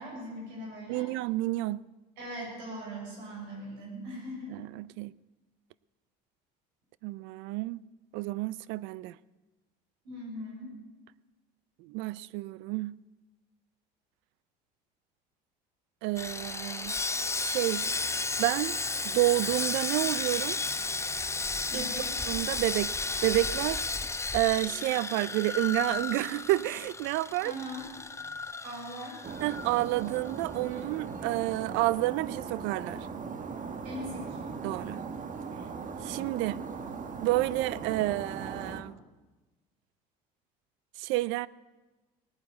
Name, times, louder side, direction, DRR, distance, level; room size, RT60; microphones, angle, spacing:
voice 1, 0.0-1.1 2.2-4.5 10.0-10.7 21.7-22.2 27.4-27.9 28.6-29.2 33.8-34.4, equal, 80° right, 6.8 m, -40 dB
voice 2, 0.9-1.8 4.5-5.1 7.0-7.8 8.1-9.1 11.8-13.0 16.0-17.0 17.4-17.9 18.4-18.7 19.0-20.6 21.7-21.9 22.3-23.8 24.3-27.5 29.4-33.1 34.6-35.0 36.0-36.6 37.2-38.9 41.0-41.5, right 18 dB, 65° right, 0.5 m, -30 dB
Sawing, 16.2-30.4 30.7-30.8 31.3-31.4, left 3 dB, 15° left, 0.8 m, -33 dB
sound 1, 29.2-38.8, right 5 dB, 35° right, 1.6 m, -39 dB
18.0 x 9.3 x 8.1 m
hypercardioid pair, 75°, 21 cm